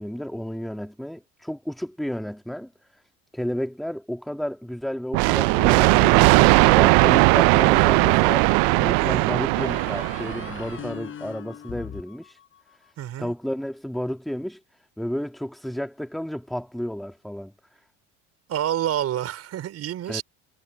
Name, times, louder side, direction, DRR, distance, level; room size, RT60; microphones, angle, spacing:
voice 1, 0.0-2.7 3.3-12.4 13.2-14.6 15.0-17.5 20.1-20.2, equal, ahead, 1.8 m, -32 dB
sound 1, 5.1-10.7, right 25 dB, 70° right, 0.5 m, -18 dB
sound 2, 7.7-8.6 9.6-12.9, left 9 dB, 35° left, 5.1 m, -40 dB
voice 2, 9.0-9.3 13.0-13.3 18.5-20.2, right 11 dB, 40° right, 4.9 m, -28 dB
cardioid pair, 150°, 37 cm